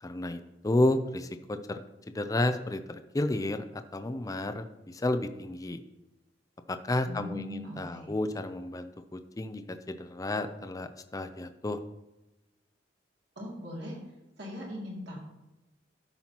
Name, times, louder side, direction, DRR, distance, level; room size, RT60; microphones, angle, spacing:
voice 1, 0.0-5.8 6.7-11.8, left 1 dB, 20° left, 9 dB, 0.4 m, -32 dB
voice 2, 7.0-8.1 13.4-14.0 14.4-15.2, left 1 dB, 65° right, -4 dB, 2.4 m, -39 dB
13.0 x 5.6 x 2.9 m, 0.98 s
head